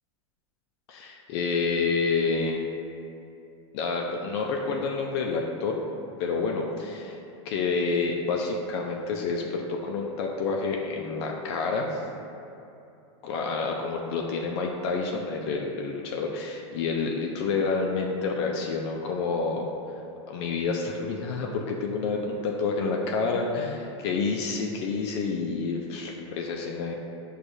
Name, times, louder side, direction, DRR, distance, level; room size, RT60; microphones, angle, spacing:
voice 1, 0.9-2.6 3.7-5.8 6.2-12.0 13.2-19.7 20.3-26.9, left 4 dB, 60° left, 0 dB, 0.4 m, -28 dB
6.2 x 2.3 x 2.6 m, 2.8 s
supercardioid pair, 135°, 16 cm